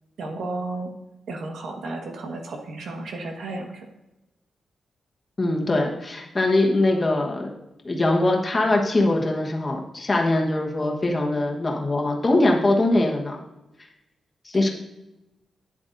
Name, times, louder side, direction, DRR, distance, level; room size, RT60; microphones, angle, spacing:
voice 1, 0.2-0.9 1.3-3.9 14.5-14.7, right 2 dB, 85° right, 3 dB, 1.5 m, -33 dB
voice 2, 5.4-7.5 7.8-13.4 14.4-14.7, left 2 dB, 25° left, 0 dB, 1.3 m, -22 dB
11.5 x 9.7 x 2.6 m, 0.98 s
wide cardioid pair, 155°, 0 cm